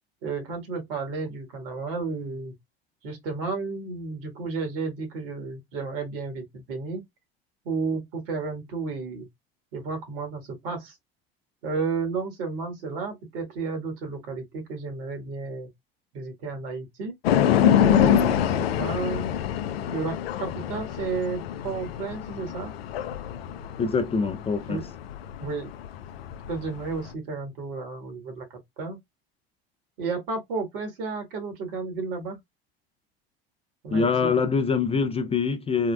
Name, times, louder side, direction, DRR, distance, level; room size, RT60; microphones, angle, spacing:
voice 1, 0.2-2.5 3.0-7.0 7.6-9.3 9.7-11.0 11.6-15.7 16.1-17.1 17.8-19.3 19.9-22.7 24.7-24.9 25.4-25.7 26.5-28.4 28.8-29.0 30.0-32.4 33.8-34.3, right 4 dB, 65° right, 1.5 m, -32 dB
sound 1, 17.2-27.1, left 9 dB, 75° left, 0.5 m, -25 dB
voice 2, 23.8-24.8 33.9-35.9, left 5 dB, 20° left, 0.5 m, -24 dB
3.6 x 2.2 x 2.2 m
hypercardioid pair, 75°, 31 cm